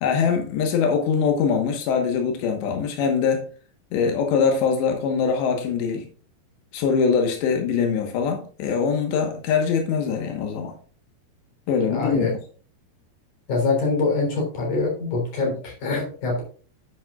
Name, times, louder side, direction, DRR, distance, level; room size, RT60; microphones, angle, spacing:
voice 1, 0.0-3.5 3.9-6.1 6.7-10.7 11.7-12.3, left 6 dB, 90° left, 3.5 m, -23 dB
voice 2, 11.9-12.3 13.5-16.4, left 3 dB, 50° left, 5.2 m, -24 dB
10.0 x 8.8 x 2.4 m
omnidirectional pair, 4.8 m